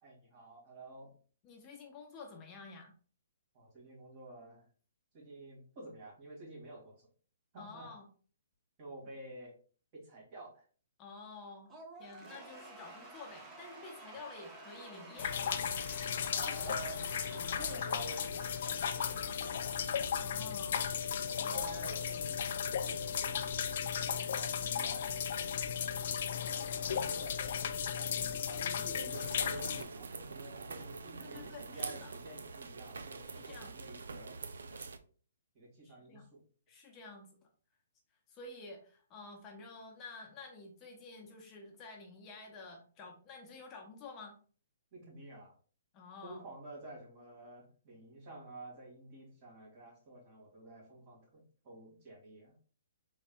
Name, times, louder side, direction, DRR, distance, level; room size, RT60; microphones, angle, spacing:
voice 1, 0.0-1.1 3.5-4.7 5.1-7.1 7.5-7.9 8.8-9.5 9.9-10.6 16.3-17.1 17.3-19.9 21.2-26.1 26.7-34.4 34.7-34.9 35.5-36.4 44.9-45.5 46.2-52.6, right 2 dB, 40° right, -3 dB, 2.1 m, -50 dB
voice 2, 1.4-2.9 7.6-8.1 11.0-11.7 12.0-15.6 20.2-20.9 21.3-21.7 31.2-32.1 33.2-33.7 35.8-36.2 36.7-37.5 38.3-44.4 45.9-46.5, left 3 dB, 25° left, 1 dB, 0.8 m, -50 dB
Cheering / Applause / Crowd, 11.7-20.3, right 2 dB, 15° right, 0.9 m, -52 dB
sound 1, 15.2-29.8, left 7 dB, 55° left, 0.4 m, -35 dB
sound 2, 29.1-35.0, right 4 dB, 80° right, 0.5 m, -45 dB
4.0 x 4.0 x 2.3 m, 0.41 s
hypercardioid pair, 145°, 0 cm